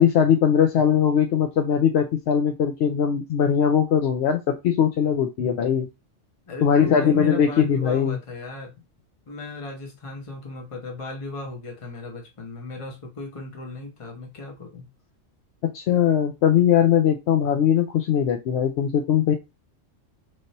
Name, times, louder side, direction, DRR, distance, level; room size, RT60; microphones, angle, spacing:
voice 1, 0.0-5.9 6.6-8.2 15.7-19.3, left 8 dB, 65° left, 0.8 m, -20 dB
voice 2, 6.5-8.7 9.3-14.9, left 4 dB, 30° left, 1.0 m, -35 dB
3.3 x 2.6 x 4.1 m
omnidirectional pair, 1.3 m